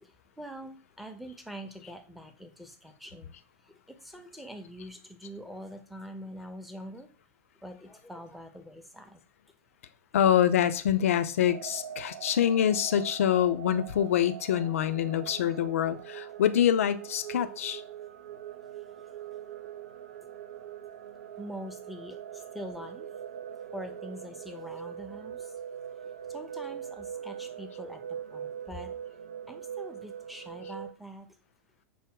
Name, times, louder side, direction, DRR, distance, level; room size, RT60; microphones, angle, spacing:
voice 1, 0.4-3.4 3.9-7.1 7.6-9.2 21.4-23.1 23.7-25.5 26.3-28.9 29.5-31.3, equal, ahead, 0.6 m, -44 dB
voice 2, 10.1-17.8, left 10 dB, 65° left, 0.4 m, -25 dB
sound 1, 11.4-30.9, right 9 dB, 70° right, 0.4 m, -42 dB
5.9 x 2.1 x 3.7 m
figure-of-eight pair, 90°, 8 cm